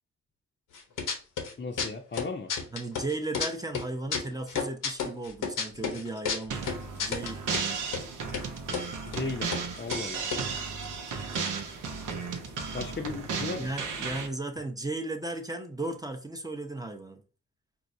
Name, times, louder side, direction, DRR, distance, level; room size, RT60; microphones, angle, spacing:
sound 1, 0.7-1.5 1.8-3.5 3.7-7.7 7.9-8.0 8.3-8.9 9.1-9.2 9.5-9.7 9.9-11.6 11.9-12.0 12.1-12.5, left 6 dB, 75° left, 0.8 m, -32 dB
voice 1, 1.6-2.5 9.0-10.3 12.7-13.7, left 4 dB, 35° left, 0.6 m, -36 dB
voice 2, 2.7-6.7 7.0-7.4 13.6-17.2, right 2 dB, 10° right, 0.6 m, -35 dB
sound 2, 6.5-14.3, right 5 dB, 80° right, 0.7 m, -34 dB
4.5 x 2.0 x 2.6 m
supercardioid pair, 45°, 31 cm